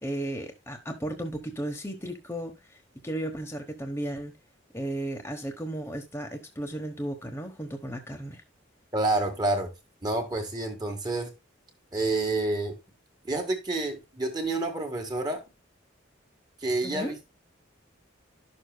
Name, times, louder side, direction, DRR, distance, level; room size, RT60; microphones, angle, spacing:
voice 1, 0.0-2.8 3.0-4.3 4.7-8.4 16.8-17.1, right 1 dB, 10° left, 1.1 m, -34 dB
voice 2, 8.9-9.7 10.0-11.3 11.9-12.8 13.2-15.4 16.6-17.3, right 2 dB, 20° right, 1.7 m, -28 dB
11.5 x 6.7 x 2.3 m
head